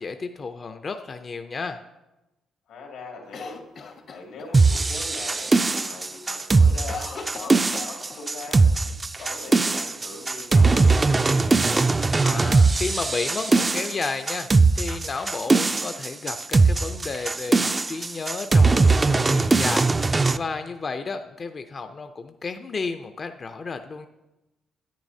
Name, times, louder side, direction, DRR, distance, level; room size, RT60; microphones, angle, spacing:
voice 1, 0.0-1.8 12.2-14.5 14.7-19.9 20.3-24.1, left 4 dB, 40° left, 7 dB, 0.4 m, -32 dB
voice 2, 2.7-3.6 4.1-8.6 9.2-11.9, left 3 dB, 90° left, 0 dB, 2.1 m, -41 dB
Cough, 3.3-4.8 5.2-5.3 5.6-6.0 6.3-8.6 8.8-8.9 9.7-10.5, left 5 dB, 55° left, 0.8 m, -40 dB
sound 1, 4.5-20.4, right 3 dB, 25° right, 0.3 m, -20 dB
10.5 x 8.7 x 2.7 m, 1.0 s
cardioid pair, 90°, 0 cm